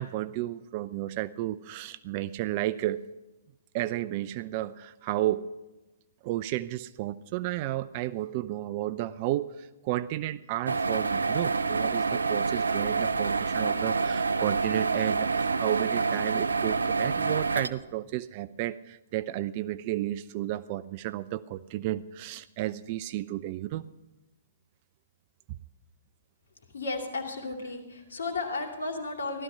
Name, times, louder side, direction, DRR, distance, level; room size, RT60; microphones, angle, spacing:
voice 1, 0.0-3.0 3.7-5.5 6.2-23.8, right 14 dB, 40° right, 16 dB, 0.4 m, -32 dB
sound 1, 10.7-17.7, right 4 dB, 80° right, 0.7 m, -27 dB
voice 2, 26.7-29.4, left 3 dB, 75° left, 3 dB, 2.7 m, -34 dB
16.0 x 13.0 x 5.6 m, 1.0 s
figure-of-eight pair, 120°, 0 cm